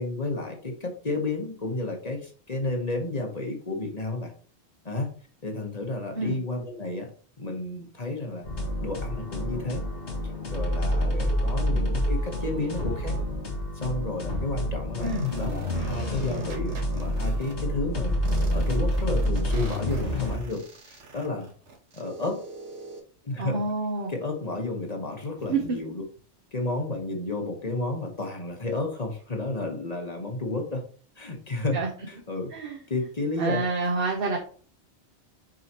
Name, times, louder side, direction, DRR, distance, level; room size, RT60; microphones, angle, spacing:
voice 1, 0.0-4.3 4.8-5.1 5.4-7.1 7.4-8.4 8.8-9.8 10.5-13.2 13.7-18.2 18.5-21.5 21.9-22.4 23.2-23.6 24.1-26.0 26.5-30.8 31.2-31.8 32.1-32.5 32.9-33.6, left 2 dB, 35° left, 2 dB, 1.3 m, -31 dB
sound 1, 8.4-20.4, equal, 75° left, 2.0 m, -28 dB
sound 2, 15.0-17.5 18.3-23.0, right 4 dB, 85° right, 1.4 m, -40 dB
voice 2, 23.4-24.1 25.5-25.6 31.7-31.9 32.5-32.8 33.4-34.4, right 3 dB, 55° right, 1 dB, 1.1 m, -27 dB
6.5 x 4.9 x 3.0 m, 0.42 s
omnidirectional pair, 1.2 m